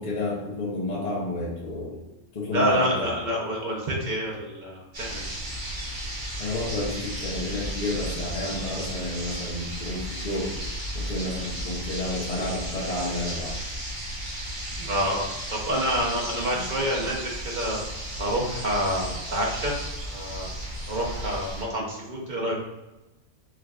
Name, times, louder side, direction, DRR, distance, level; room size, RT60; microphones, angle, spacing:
voice 1, 0.0-2.0 2.3-3.2 6.4-10.6 10.9-13.6, left 2 dB, 40° left, -4 dB, 0.7 m, -30 dB
voice 2, 2.5-5.2 14.8-17.8 18.2-19.7 20.0-20.5 20.9-22.6, equal, 45° right, -2 dB, 0.7 m, -28 dB
sound 1, 4.9-21.6, right 1 dB, 90° right, 1.9 m, -34 dB
4.6 x 2.3 x 2.3 m, 1.0 s
omnidirectional pair, 1.3 m